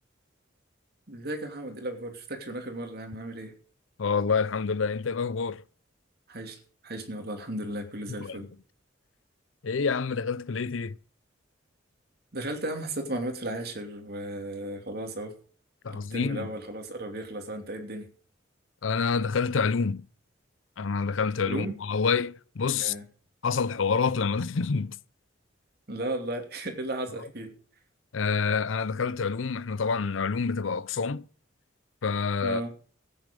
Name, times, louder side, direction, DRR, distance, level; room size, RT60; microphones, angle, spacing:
voice 1, 1.1-3.5 6.3-8.5 12.3-15.3 15.9-18.1 21.4-21.8 22.7-23.0 25.9-27.5 32.4-32.7, right 1 dB, 55° right, 2.7 m, -35 dB
voice 2, 4.0-5.6 8.2-8.4 9.6-11.0 15.8-16.5 18.8-20.0 20.8-22.9 23.4-25.0 28.1-31.3 32.0-32.6, left 5 dB, 85° left, 0.6 m, -27 dB
14.0 x 9.4 x 5.2 m
head